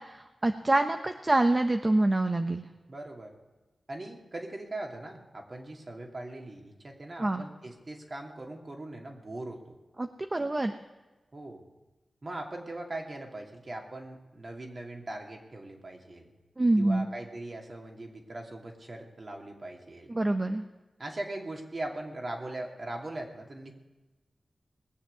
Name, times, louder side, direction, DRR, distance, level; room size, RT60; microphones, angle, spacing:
voice 1, 0.0-2.6 7.2-7.4 10.0-10.8 16.6-17.1 20.1-20.6, right 2 dB, 35° right, 7 dB, 0.8 m, -26 dB
voice 2, 2.9-3.3 3.9-9.7 11.3-11.6 12.2-16.3 16.8-20.1 21.0-23.7, right 2 dB, 50° right, 1 dB, 2.6 m, -40 dB
20.5 x 7.6 x 6.8 m, 1.1 s
cardioid pair, 45°, 0 cm